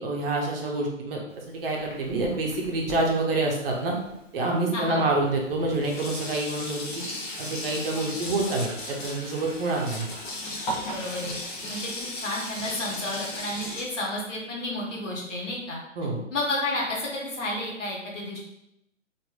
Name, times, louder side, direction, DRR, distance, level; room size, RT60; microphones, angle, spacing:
voice 1, 0.0-3.9 4.3-7.0 7.4-10.1 16.0-16.2, right 2 dB, 45° right, -1 dB, 0.7 m, -27 dB
Sink (filling or washing), 1.3-4.4 5.2-5.3 5.5-13.8, left 1 dB, 40° left, 0.7 m, -36 dB
voice 2, 4.7-5.0 10.9-11.4 11.7-15.8 16.3-18.4, left 1 dB, 70° left, -2 dB, 1.1 m, -31 dB
3.0 x 2.6 x 2.4 m, 0.82 s
figure-of-eight pair, 130°, 39 cm